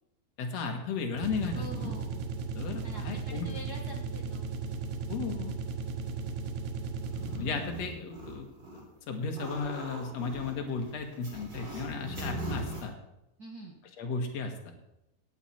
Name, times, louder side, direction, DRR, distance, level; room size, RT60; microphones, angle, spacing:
voice 1, 0.4-1.9 2.5-3.5 5.1-5.5 7.4-8.5 9.1-12.9 14.0-14.5, left 4 dB, 55° left, 4 dB, 2.2 m, -34 dB
sound 1, 1.1-7.7, right 4 dB, 65° right, 2.0 m, -36 dB
voice 2, 1.5-2.2 2.8-4.5 13.4-13.8, right 1 dB, 85° right, -1 dB, 0.8 m, -45 dB
sound 2, 7.0-8.8 9.1-12.8, right 1 dB, 30° right, 4.1 m, -40 dB
17.5 x 9.7 x 4.4 m, 0.87 s
omnidirectional pair, 4.4 m